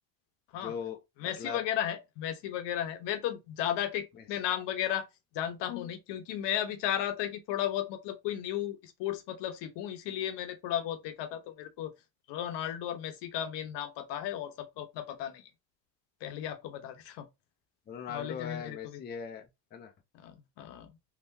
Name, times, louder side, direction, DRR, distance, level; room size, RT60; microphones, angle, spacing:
voice 1, 0.5-1.6 17.9-19.9, left 7 dB, 20° left, 0.4 m, -40 dB
voice 2, 1.2-5.1 5.3-11.9 12.3-15.4 16.2-17.3 18.1-19.0 20.1-20.9, left 11 dB, 60° left, 0.8 m, -34 dB
3.8 x 2.0 x 2.6 m
hypercardioid pair, 80°, 49 cm